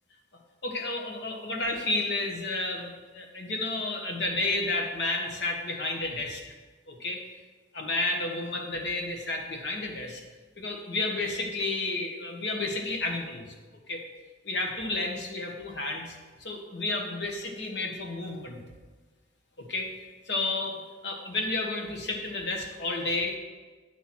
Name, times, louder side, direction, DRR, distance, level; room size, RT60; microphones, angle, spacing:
voice 1, 0.6-6.4 6.9-7.2 7.7-10.2 10.6-13.5 13.9-14.0 14.4-16.1 16.4-18.6 19.6-19.9 20.3-23.4, left 2 dB, 65° left, 1 dB, 1.3 m, -31 dB
9.2 x 4.3 x 6.1 m, 1.3 s
head